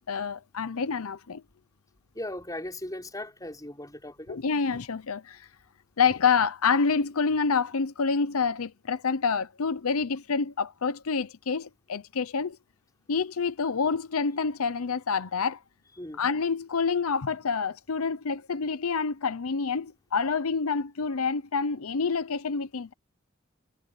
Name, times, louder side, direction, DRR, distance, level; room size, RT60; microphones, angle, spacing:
voice 1, 0.1-1.4 4.3-5.4 6.0-12.6 13.1-15.6 16.2-22.9, left 5 dB, 85° left, 0.7 m, -27 dB
voice 2, 2.2-4.4 16.0-16.2, left 1 dB, 15° left, 5.5 m, -38 dB
head